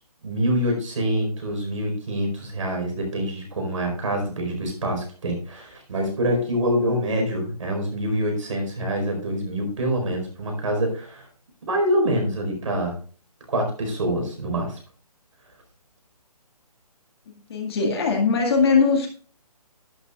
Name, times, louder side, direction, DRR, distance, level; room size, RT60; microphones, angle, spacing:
voice 1, 0.2-11.3 11.7-12.9 13.5-14.8, equal, 55° right, 3 dB, 4.5 m, -25 dB
voice 2, 17.3-19.1, left 5 dB, 40° left, 2 dB, 2.0 m, -21 dB
11.5 x 10.5 x 2.4 m, 0.40 s
hypercardioid pair, 160°, 20 cm